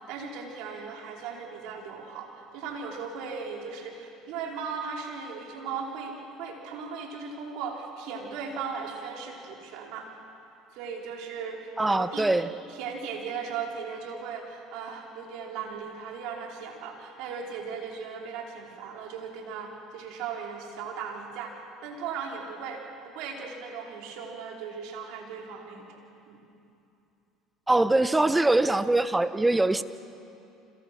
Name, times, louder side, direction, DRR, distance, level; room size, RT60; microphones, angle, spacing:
voice 1, 0.0-2.3 2.5-10.1 10.7-26.0 26.3-26.4, right 6 dB, 70° right, 0 dB, 4.9 m, -37 dB
voice 2, 11.8-12.5 27.7-29.8, right 2 dB, 10° right, 12 dB, 1.2 m, -23 dB
30.0 x 26.0 x 6.1 m, 2.7 s
hypercardioid pair, 75°, 0 cm